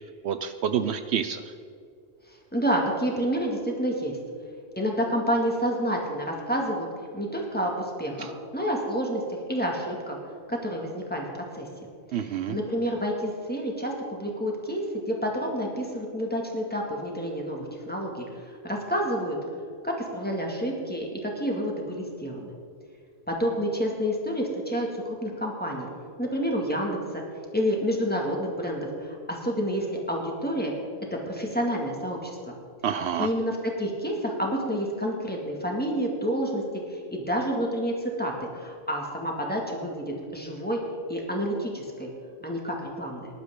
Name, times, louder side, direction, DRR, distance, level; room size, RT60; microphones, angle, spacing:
voice 1, 0.2-1.5 8.2-8.3 12.1-12.6 32.8-33.3, right 8 dB, 70° right, 10 dB, 0.8 m, -28 dB
voice 2, 2.3-4.2 4.8-6.9 7.1-10.2 10.5-11.7 12.1-19.4 19.8-22.5 23.3-25.9 26.2-27.2 27.5-30.7 31.1-32.6 33.2-36.6 36.9-40.8 41.1-42.1 42.4-43.3, equal, 10° left, -1 dB, 2.1 m, -29 dB
19.0 x 11.5 x 3.8 m, 2.3 s
omnidirectional pair, 1.2 m